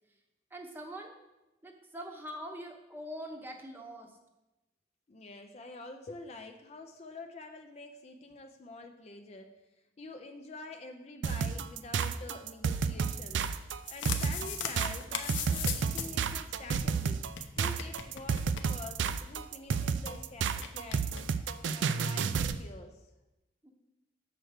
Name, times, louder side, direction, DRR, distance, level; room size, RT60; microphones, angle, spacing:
voice 1, 0.5-1.1 1.6-4.2 23.6-23.7, equal, 10° right, 2 dB, 0.8 m, -43 dB
voice 2, 5.1-9.5 10.0-13.4 13.9-17.2 17.6-21.1 21.7-23.1, left 3 dB, 35° left, 5 dB, 0.4 m, -47 dB
sound 1, 11.2-22.6, right 6 dB, 75° right, 0.4 m, -31 dB
sound 2, 13.6-16.3 16.6-16.7 16.8-16.9 17.3-19.2 19.4-19.5 19.7-20.2 20.6-21.2, left 7 dB, 85° left, 0.7 m, -38 dB
6.7 x 4.5 x 6.4 m, 1.0 s
head